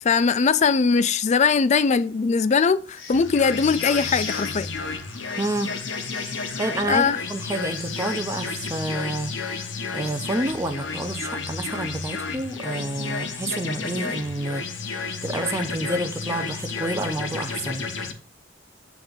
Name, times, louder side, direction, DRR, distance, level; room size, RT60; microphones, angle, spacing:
voice 1, 0.0-4.7 6.8-7.2, left 5 dB, 35° left, 0.4 m, -20 dB
sound 1, 2.9-11.2, left 5 dB, 90° left, 1.4 m, -40 dB
sound 2, 3.1-18.1, left 4 dB, 70° left, 0.8 m, -32 dB
voice 2, 5.4-5.7 6.6-9.7 9.9-14.7 15.2-17.9, right 2 dB, 15° right, 0.5 m, -29 dB
7.3 x 3.4 x 5.3 m
head